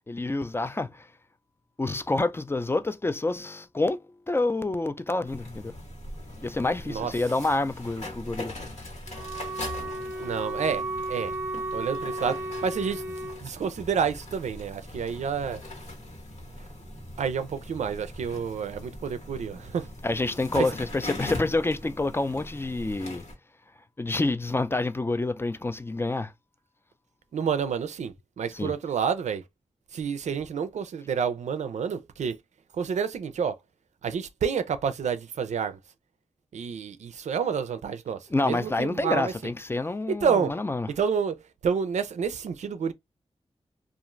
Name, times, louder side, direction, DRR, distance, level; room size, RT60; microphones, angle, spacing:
voice 1, 0.1-1.1 1.8-4.0 4.3-5.7 6.4-8.5 20.0-23.2 24.0-26.3 28.5-28.7 38.3-40.9, left 2 dB, 20° left, 0.3 m, -28 dB
sound 1, 5.2-23.3, left 1 dB, 70° left, 1.2 m, -41 dB
Wind instrument woodwind instrument, 9.1-13.4, right 2 dB, 20° right, 0.7 m, -34 dB
voice 2, 10.2-11.3 11.7-15.6 17.2-19.9 20.5-20.7 27.3-29.4 29.9-32.4 32.7-33.6 34.0-35.8 36.5-39.3 40.1-40.5 41.0-41.4 41.6-42.9, right 6 dB, 90° right, 0.4 m, -29 dB
2.4 x 2.4 x 3.0 m
wide cardioid pair, 70°, 12 cm